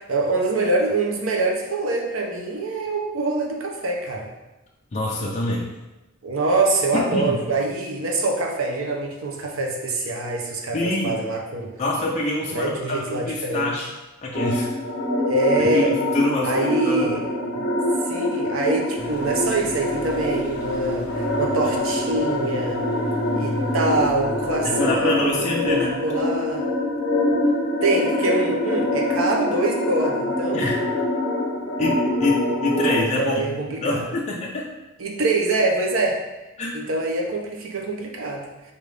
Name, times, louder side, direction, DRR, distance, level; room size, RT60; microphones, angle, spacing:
voice 1, 0.0-4.3 6.2-11.7 12.5-13.9 15.3-15.9 16.4-17.2 18.0-22.8 23.4-26.6 27.8-30.6 33.0-34.0 35.0-36.2 36.7-38.5, right 2 dB, 70° right, 1 dB, 0.7 m, -24 dB
voice 2, 4.9-5.7 6.9-7.4 10.7-11.2 11.8-13.9 14.2-14.7 15.7-17.2 24.6-26.0 30.5-30.8 31.8-34.7 36.6-36.7, left 2 dB, 35° left, -3 dB, 0.5 m, -25 dB
sound 1, 14.3-33.0, left 1 dB, 65° left, 1.0 m, -25 dB
sound 2, 19.0-26.5, left 1 dB, 5° right, 1.1 m, -35 dB
5.0 x 2.7 x 3.3 m, 1.0 s
head